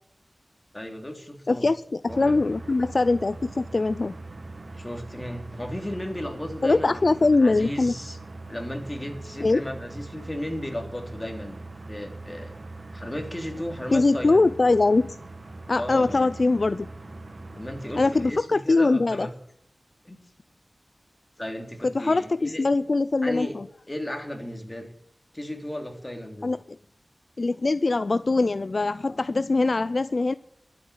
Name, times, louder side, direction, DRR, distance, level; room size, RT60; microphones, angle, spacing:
voice 1, 0.7-1.7 2.1-2.4 4.7-8.2 8.5-11.6 11.9-12.5 12.9-14.5 15.8-16.3 17.5-19.3 20.0-20.2 21.4-22.6 23.2-23.5 23.9-24.9 25.3-26.5, left 1 dB, 20° left, 3 dB, 3.1 m, -35 dB
voice 2, 1.5-4.2 6.6-7.9 9.4-9.6 13.9-15.2 15.7-16.9 18.0-19.3 21.8-23.6 26.4-26.6 27.4-30.3, left 3 dB, 55° left, 14 dB, 0.4 m, -22 dB
sound 1, 2.1-18.3, right 2 dB, 60° right, 1.6 m, -41 dB
12.5 x 8.5 x 9.7 m, 0.71 s
wide cardioid pair, 80°, 0 cm